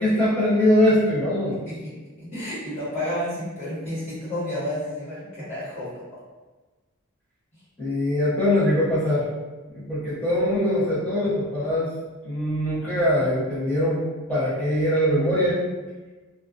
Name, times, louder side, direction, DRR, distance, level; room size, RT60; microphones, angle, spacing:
voice 1, 0.0-1.7 7.8-9.3 9.7-11.9 12.2-14.0 14.3-15.6, left 1 dB, 5° left, -11 dB, 0.9 m, -22 dB
voice 2, 1.5-1.9 2.2-5.9, left 1 dB, 30° left, -12 dB, 1.3 m, -31 dB
2.3 x 2.1 x 2.5 m, 1.3 s
head